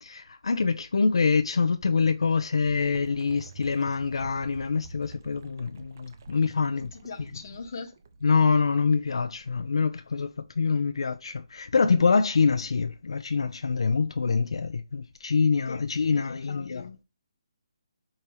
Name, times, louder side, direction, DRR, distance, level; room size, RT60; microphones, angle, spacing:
voice 1, 0.0-6.9 8.2-16.9, left 5 dB, 75° left, 0.4 m, -25 dB
sound 1, 2.6-8.4, right 3 dB, 35° right, 0.4 m, -47 dB
voice 2, 6.8-7.9 15.7-15.8 16.1-17.0, left 5 dB, 40° left, 0.8 m, -41 dB
4.8 x 2.7 x 2.9 m
hypercardioid pair, 170°, 3 cm